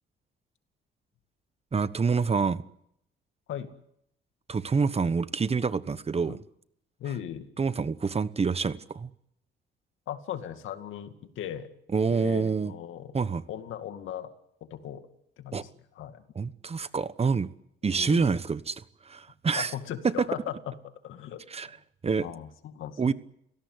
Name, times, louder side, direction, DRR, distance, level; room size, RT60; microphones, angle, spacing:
voice 1, 1.7-2.6 4.5-6.4 7.6-9.1 11.9-12.7 13.1-13.4 15.5-15.6 16.3-17.5 17.8-19.7 20.2-20.3 21.5-21.7 22.0-22.3 23.0-23.1, right 5 dB, 30° right, 1.1 m, -27 dB
voice 2, 7.0-7.5 10.1-11.7 12.1-13.1 13.5-14.3 14.7-15.1 15.4-15.7 16.0-16.2 17.8-18.3 19.6-20.8 21.0-21.4 22.2-23.1, left 10 dB, 80° left, 2.3 m, -38 dB
30.0 x 17.5 x 8.0 m
cardioid pair, 90°, 20 cm